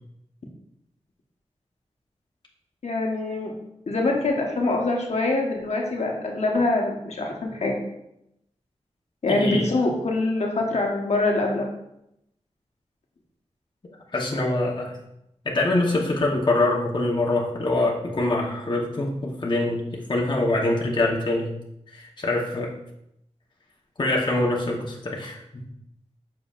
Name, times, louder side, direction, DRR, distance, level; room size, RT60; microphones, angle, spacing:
voice 1, 2.8-3.5 3.9-7.8 9.2-11.7, left 2 dB, 70° left, 0 dB, 1.1 m, -24 dB
voice 2, 9.3-9.9 14.1-15.0 15.4-21.5 21.9-22.7 24.0-25.6, left 2 dB, 40° left, -2 dB, 1.0 m, -24 dB
7.3 x 5.7 x 2.4 m, 0.81 s
wide cardioid pair, 100°, 12 cm